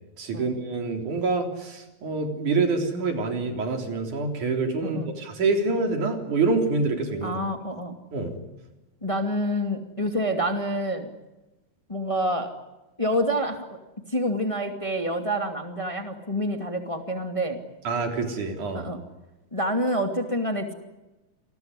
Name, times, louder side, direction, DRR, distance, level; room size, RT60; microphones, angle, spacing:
voice 1, 0.2-7.4 8.1-8.4 17.8-18.9, right 3 dB, 90° right, 4 dB, 5.1 m, -26 dB
voice 2, 7.2-8.0 9.0-11.1 11.9-12.5 13.0-13.8 14.1-17.6 18.7-19.0 19.5-20.7, equal, 10° left, 5 dB, 2.2 m, -27 dB
28.0 x 20.5 x 9.9 m, 1.0 s
omnidirectional pair, 3.4 m